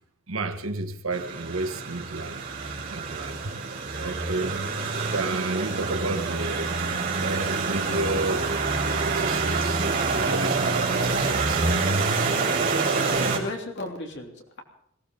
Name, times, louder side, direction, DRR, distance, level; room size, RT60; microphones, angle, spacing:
voice 1, 0.3-2.4 2.9-3.6 4.0-4.6 5.1-6.7 7.2-8.5 8.8-11.7 12.4-12.5 13.1-13.4, right 2 dB, 85° right, 1.5 m, -32 dB
sound 1, 1.1-13.4, right 4 dB, 45° right, 3.4 m, -26 dB
voice 2, 12.6-14.6, left 2 dB, 60° left, 3.2 m, -36 dB
21.5 x 16.5 x 3.9 m
head